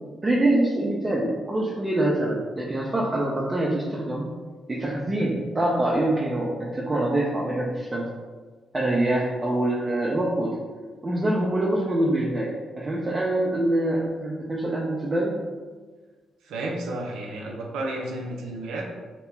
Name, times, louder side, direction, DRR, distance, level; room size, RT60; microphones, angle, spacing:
voice 1, 0.2-4.3 4.7-8.0 8.7-10.6 11.0-15.4, right 1 dB, 30° right, -4 dB, 0.5 m, -25 dB
voice 2, 16.4-18.8, right 2 dB, 80° right, 0 dB, 0.5 m, -32 dB
2.8 x 2.2 x 3.2 m, 1.4 s
supercardioid pair, 50°, 0 cm